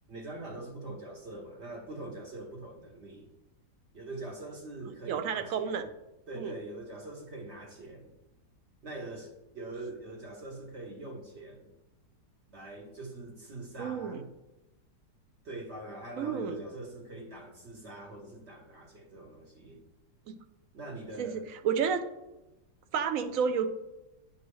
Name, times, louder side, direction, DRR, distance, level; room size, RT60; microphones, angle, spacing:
voice 1, 0.1-3.3 3.9-5.8 6.3-8.1 8.8-11.7 12.5-14.3 15.4-19.8 20.7-21.5, right 2 dB, 50° right, 0 dB, 1.0 m, -43 dB
voice 2, 5.0-5.9 6.4-6.5 13.8-14.2 16.2-16.6 20.3-20.4 21.2-22.0 22.9-23.7, right 7 dB, 70° right, 9 dB, 0.8 m, -31 dB
9.8 x 5.3 x 3.1 m, 0.98 s
omnidirectional pair, 1.8 m